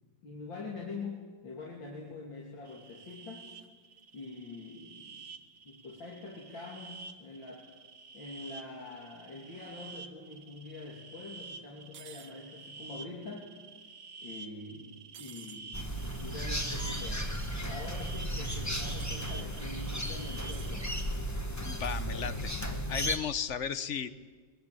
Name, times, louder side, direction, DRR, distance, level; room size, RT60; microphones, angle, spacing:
voice 1, 0.2-3.5 4.1-5.3 5.7-7.7 8.1-13.5 14.2-20.9, left 3 dB, 75° left, -1 dB, 3.6 m, -45 dB
sound 1, 2.6-20.9, right 4 dB, 40° right, 1.4 m, -49 dB
sound 2, 11.9-12.3 15.1-15.6 18.7-19.2 20.5-20.7 21.7-22.1, right 8 dB, 75° right, 1.9 m, -51 dB
sound 3, 15.7-23.2, equal, 10° left, 1.7 m, -35 dB
voice 2, 21.6-22.5 22.9-24.1, left 7 dB, 50° left, 14 dB, 0.9 m, -34 dB
22.5 x 21.5 x 9.0 m, 1.5 s
omnidirectional pair, 2.1 m